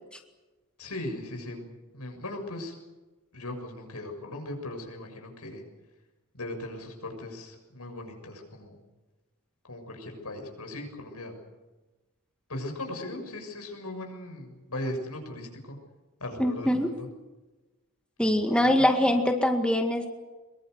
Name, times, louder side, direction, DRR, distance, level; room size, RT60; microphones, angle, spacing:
voice 1, 0.8-2.7 3.3-5.6 6.3-8.8 9.7-11.3 12.5-15.8 16.2-17.1 18.2-18.9, left 1 dB, 85° left, 3 dB, 6.8 m, -38 dB
voice 2, 16.4-16.9 18.2-20.1, left 1 dB, 5° left, 4 dB, 1.9 m, -23 dB
24.0 x 22.5 x 8.0 m, 1.2 s
head